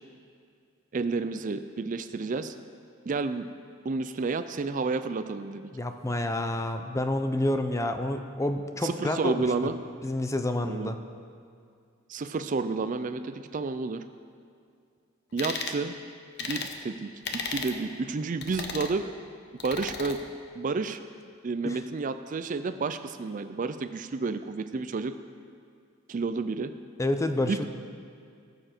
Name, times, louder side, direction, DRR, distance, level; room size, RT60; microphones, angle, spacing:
voice 1, 0.9-2.5 3.1-3.5 3.8-5.7 8.8-9.8 10.7-10.9 12.1-14.0 15.3-15.9 16.4-19.1 19.6-20.2 20.6-21.0 21.4-25.1 26.1-26.7 27.5-27.6, right 4 dB, 40° right, 10 dB, 0.4 m, -30 dB
voice 2, 5.7-9.7 10.0-10.9 21.6-21.8 27.0-27.6, left 1 dB, 15° left, 7 dB, 0.5 m, -29 dB
sound 1, 15.4-15.8 16.4-16.7 17.2-17.8 18.4-18.9 19.6-20.2, left 5 dB, 55° left, 0.9 m, -34 dB
19.5 x 6.8 x 4.4 m, 2.3 s
head